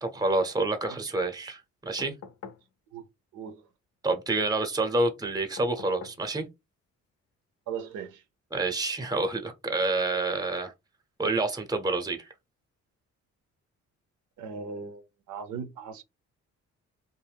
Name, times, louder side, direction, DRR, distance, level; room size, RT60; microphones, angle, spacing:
voice 1, 0.0-2.1 4.0-6.5 8.5-10.7 11.2-12.3, right 2 dB, 15° right, 0.7 m, -28 dB
sound 1, 2.0-2.7 5.6-6.3 7.9-8.0, left 6 dB, 55° left, 0.6 m, -46 dB
voice 2, 3.3-3.6 7.7-8.2 14.4-16.0, right 6 dB, 85° right, 0.7 m, -38 dB
2.6 x 2.1 x 3.4 m
cardioid pair, 90°, 30 cm